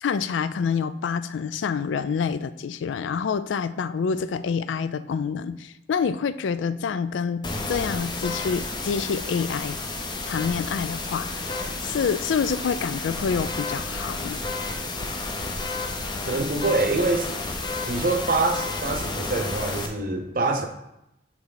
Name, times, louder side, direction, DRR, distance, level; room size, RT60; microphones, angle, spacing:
voice 1, 0.0-9.8 10.3-11.5 11.8-14.4, left 6 dB, 85° left, 14 dB, 0.4 m, -27 dB
sound 1, 7.4-19.9, left 3 dB, 25° left, 0.6 m, -31 dB
voice 2, 16.3-17.3 17.9-20.7, right 2 dB, 50° right, 6 dB, 0.7 m, -25 dB
8.7 x 3.0 x 4.0 m, 0.87 s
head